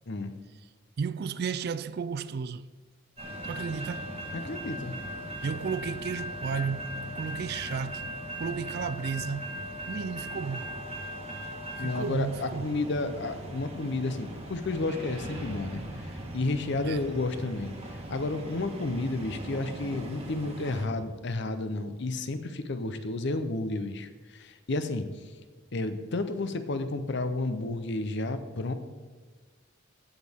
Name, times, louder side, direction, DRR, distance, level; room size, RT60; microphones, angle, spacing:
voice 1, 1.0-2.7 3.4-4.1 5.4-9.6 9.9-10.8 11.8-12.8 16.8-17.0, right 6 dB, 50° right, 0.3 m, -33 dB
sound 1, 3.2-20.9, equal, 30° right, 1.4 m, -39 dB
voice 2, 4.3-5.0 11.8-15.8 16.3-17.7 18.1-25.0 25.7-28.7, left 2 dB, 55° left, 0.7 m, -31 dB
16.0 x 6.3 x 3.6 m
head